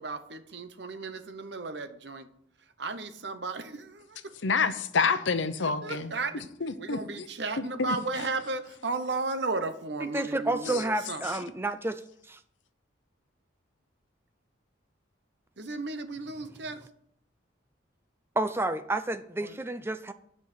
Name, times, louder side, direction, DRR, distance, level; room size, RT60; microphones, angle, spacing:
voice 1, 0.0-2.3 2.8-4.3 5.6-6.4 6.8-11.2 15.6-16.8 19.4-19.6, right 3 dB, 60° right, 10 dB, 0.9 m, -34 dB
voice 2, 4.4-6.1 6.6-7.0 7.8-7.9, left 5 dB, 70° left, 11 dB, 0.8 m, -27 dB
voice 3, 10.1-12.0 12.3-12.4 18.4-20.1, right 2 dB, 10° right, 11 dB, 0.4 m, -30 dB
9.1 x 5.5 x 7.8 m, 0.70 s
head